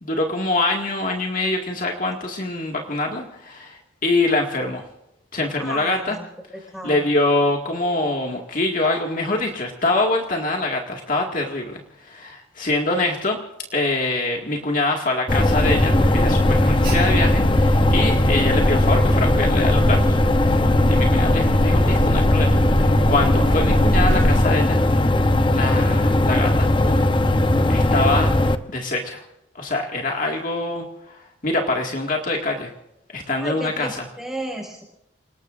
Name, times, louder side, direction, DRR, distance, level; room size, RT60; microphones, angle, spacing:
voice 1, 0.0-4.8 5.3-6.2 6.8-13.4 13.7-20.2 20.9-24.8 25.0-26.9 27.7-28.3 28.7-29.2 29.6-32.7 33.1-34.0, left 2 dB, 45° left, 1 dB, 2.1 m, -24 dB
voice 2, 5.6-6.2 6.7-7.0 33.4-34.8, right 1 dB, ahead, 0 dB, 5.3 m, -32 dB
sound 1, 15.3-28.6, left 1 dB, 25° left, 0.8 m, -18 dB
Alarm, 15.3-24.4, equal, 55° right, 5.7 m, -23 dB
29.0 x 19.0 x 2.6 m, 0.84 s
head